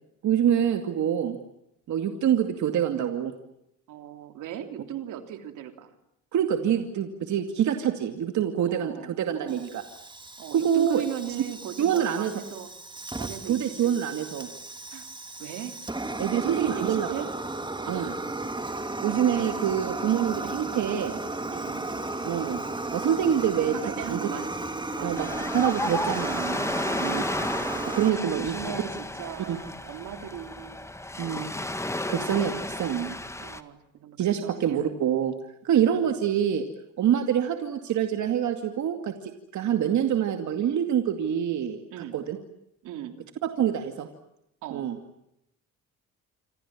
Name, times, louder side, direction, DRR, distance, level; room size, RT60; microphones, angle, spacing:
voice 1, 0.2-1.4 1.9-3.3 6.3-9.8 10.5-11.0 11.8-12.3 13.5-14.5 16.2-17.1 17.9-18.1 19.0-21.2 22.2-22.6 22.9-23.7 24.1-24.2 25.0-25.3 25.5-27.2 27.9-28.5 29.5-29.6 31.2-31.5 32.1-32.5 32.8-33.2 34.2-35.3 35.6-36.6 37.0-42.4 43.4-44.1 44.7-45.0, right 9 dB, 75° right, 6 dB, 2.4 m, -26 dB
voice 2, 3.9-5.9 8.7-9.7 10.4-12.7 13.2-14.1 14.9-15.1 15.4-15.8 16.3-17.3 17.8-18.2 21.5-21.9 23.7-24.5 25.0-25.5 28.1-30.9 33.4-34.9 35.7-36.0 41.9-42.1 42.8-43.2 44.6-44.9, right 10 dB, 90° right, 7 dB, 3.2 m, -38 dB
Fire, 9.5-28.1, right 2 dB, 15° right, 2.9 m, -34 dB
Ocean, 25.1-33.6, left 1 dB, 10° left, 1.8 m, -32 dB
27.5 x 26.0 x 7.4 m, 0.80 s
cardioid pair, 90°, 30 cm